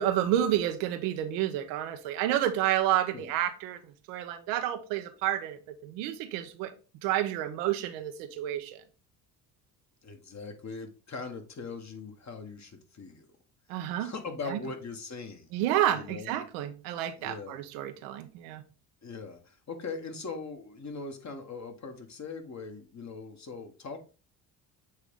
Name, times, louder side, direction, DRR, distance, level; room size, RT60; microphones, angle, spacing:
voice 1, 0.0-3.8 4.1-6.7 7.0-8.8 13.7-14.1 14.5-14.6 15.5-18.6, right 12 dB, 80° right, 0.9 m, -30 dB
voice 2, 10.0-13.3 14.0-15.5 15.9-16.4 17.2-17.6 19.0-24.0, left 4 dB, 35° left, 1.5 m, -40 dB
8.0 x 3.4 x 3.7 m
supercardioid pair, 70°, 47 cm